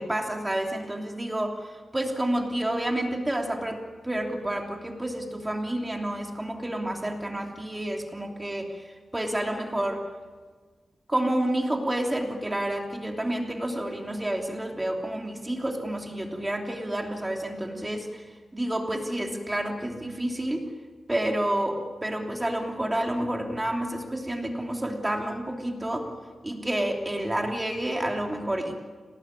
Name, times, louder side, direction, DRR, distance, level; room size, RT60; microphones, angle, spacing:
voice 1, 0.0-10.0 11.1-20.6 21.1-26.1 26.4-28.8, right 1 dB, 15° right, 2 dB, 3.1 m, -29 dB
28.0 x 18.5 x 9.9 m, 1.5 s
wide cardioid pair, 155°, 0 cm